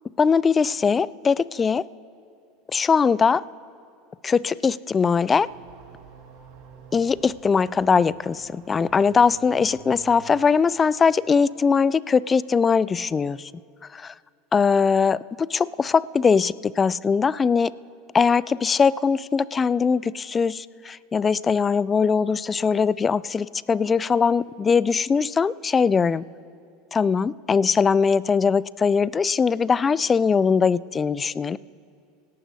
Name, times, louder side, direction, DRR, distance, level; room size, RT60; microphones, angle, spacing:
voice 1, 0.2-1.8 2.7-3.4 4.2-5.5 6.9-13.4 13.9-14.1 14.5-15.2 15.5-17.7 18.1-26.2 26.9-31.6, left 5 dB, 25° left, 20 dB, 0.3 m, -21 dB
sound 1, 5.4-10.4, right 6 dB, 55° right, 2.1 m, -49 dB
26.0 x 18.0 x 2.8 m, 2.4 s
hypercardioid pair, 80°, 0 cm